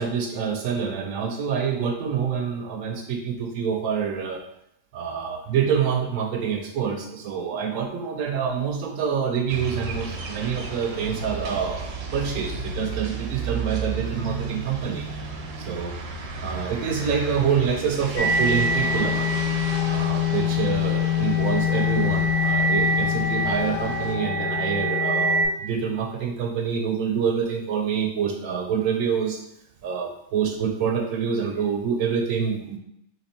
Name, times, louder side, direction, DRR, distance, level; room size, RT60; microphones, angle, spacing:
voice 1, 0.0-4.4 4.9-15.1 15.6-15.9 16.4-19.4 19.9-29.4 29.8-32.8, right 7 dB, 85° right, 2 dB, 1.0 m, -26 dB
sound 1, 9.5-24.1, right 4 dB, 60° right, 0.8 m, -34 dB
sound 2, 18.2-25.4, left 3 dB, 45° left, 1.2 m, -23 dB
4.1 x 3.0 x 4.3 m, 0.79 s
omnidirectional pair, 1.4 m